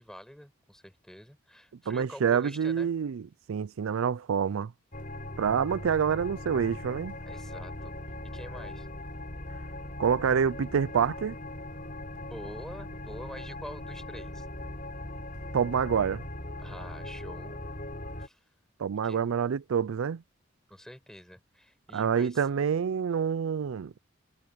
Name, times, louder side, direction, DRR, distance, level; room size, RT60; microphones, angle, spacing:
voice 1, 0.0-2.9 7.3-7.9 8.3-8.9 12.3-14.5 16.6-17.6 18.2-18.4 19.0-19.2 20.7-22.4, equal, 5° left, 7.4 m, -46 dB
voice 2, 1.9-4.7 5.4-7.1 10.0-11.4 15.5-16.2 18.8-20.2 21.9-23.9, right 7 dB, 90° right, 0.4 m, -27 dB
sound 1, 4.9-18.3, left 1 dB, 40° left, 5.4 m, -40 dB
head